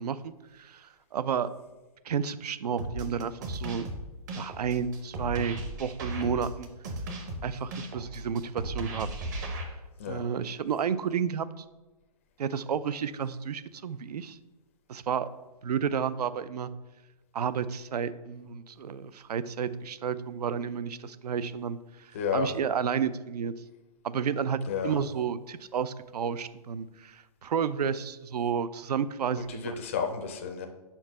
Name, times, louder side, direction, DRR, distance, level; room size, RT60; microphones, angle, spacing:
voice 1, 0.0-1.5 2.0-3.9 4.3-6.7 7.4-9.1 10.1-11.6 12.4-14.4 14.9-15.3 15.6-16.7 17.3-23.5 24.0-29.7, right 7 dB, 80° right, 15 dB, 0.5 m, -31 dB
sound 1, 2.8-9.6, right 1 dB, 30° right, 0.7 m, -36 dB
voice 2, 22.1-22.5 24.7-25.0 29.5-30.7, left 6 dB, 20° left, 4 dB, 0.4 m, -31 dB
5.5 x 4.5 x 5.8 m, 1.1 s
hypercardioid pair, 170°, 20 cm